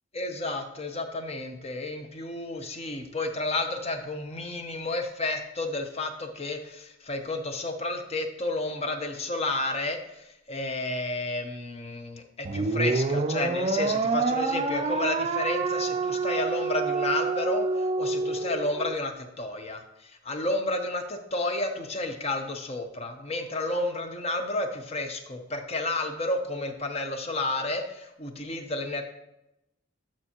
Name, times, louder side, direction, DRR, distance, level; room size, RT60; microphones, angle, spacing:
voice 1, 0.1-29.0, left 2 dB, 35° left, 6 dB, 0.7 m, -31 dB
sound 1, 12.4-18.9, right 4 dB, 30° right, 0.4 m, -27 dB
7.4 x 6.8 x 2.9 m, 0.87 s
head